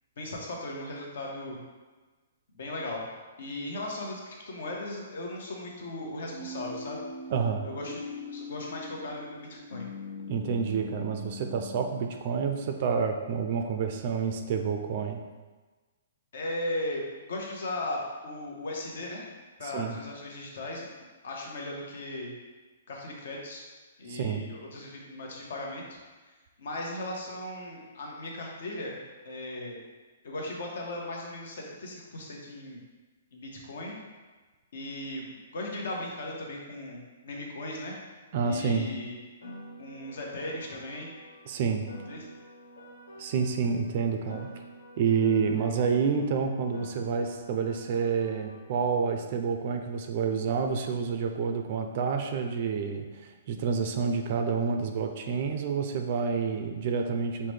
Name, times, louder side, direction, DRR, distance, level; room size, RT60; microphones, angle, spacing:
voice 1, 0.2-1.6 2.6-3.0 3.4-7.0 7.6-8.0 8.3-9.9 16.3-17.0 17.3-19.3 19.6-22.3 22.9-23.6 24.0-26.0 26.6-29.0 29.2-29.8 30.2-32.8 33.3-34.0 34.7-38.0 38.4-39.2 39.8-41.1 42.1-42.3, left 1 dB, 65° left, -1 dB, 0.9 m, -37 dB
sound 1, 6.3-11.9, left 3 dB, 45° left, 0.8 m, -41 dB
voice 2, 7.3-7.7 10.3-15.2 19.6-19.9 24.1-24.4 38.3-38.9 41.5-41.9 43.2-44.5 45.0-57.5, right 6 dB, 40° right, 5 dB, 0.4 m, -28 dB
Piano, 39.4-43.9 44.3-48.9, equal, 90° left, 1.3 m, -48 dB
5.6 x 2.1 x 3.2 m, 1.3 s
hypercardioid pair, 160°, 0 cm